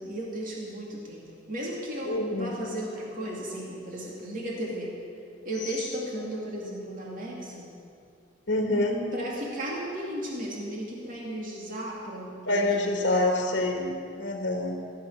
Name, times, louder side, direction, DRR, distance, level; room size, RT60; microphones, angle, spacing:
voice 1, 0.0-5.0 5.4-7.7 9.1-13.5, right 1 dB, 45° right, -3 dB, 2.5 m, -35 dB
voice 2, 2.1-2.5 5.6-5.7 8.5-9.0 12.4-14.8, left 2 dB, 60° left, 2 dB, 1.6 m, -26 dB
15.0 x 7.6 x 9.6 m, 2.5 s
head